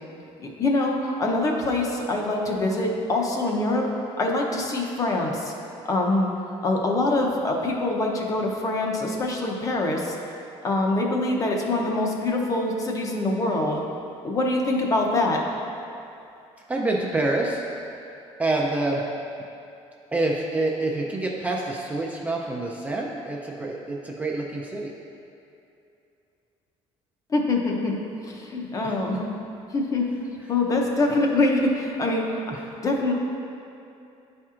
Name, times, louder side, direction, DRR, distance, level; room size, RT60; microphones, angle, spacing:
voice 1, 0.6-3.9 4.2-5.5 5.9-6.3 6.6-10.2 10.6-13.8 14.2-15.4 27.3-28.0 28.2-29.3 29.7-30.1 30.5-32.4 32.8-33.1, left 2 dB, 30° left, 0 dB, 0.6 m, -24 dB
voice 2, 16.7-17.6 18.4-19.0 20.1-24.9 28.8-29.0 32.5-32.6, right 2 dB, 15° right, -2 dB, 0.4 m, -27 dB
10.0 x 4.3 x 2.4 m, 2.7 s
cardioid pair, 160°, 12 cm